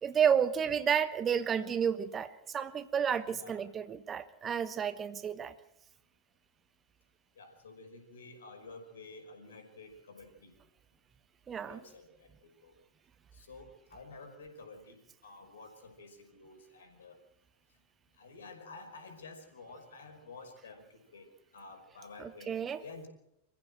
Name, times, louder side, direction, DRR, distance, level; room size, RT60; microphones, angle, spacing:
voice 1, 0.0-5.5 11.5-11.8 22.2-22.8, right 8 dB, 25° right, 14 dB, 1.1 m, -31 dB
voice 2, 3.3-3.6 7.4-10.6 11.6-12.3 12.6-12.7 13.3-17.2 18.2-21.3 21.5-23.1, left 3 dB, 65° left, 5 dB, 5.3 m, -51 dB
27.0 x 15.0 x 7.8 m, 0.86 s
figure-of-eight pair, 90°, 0 cm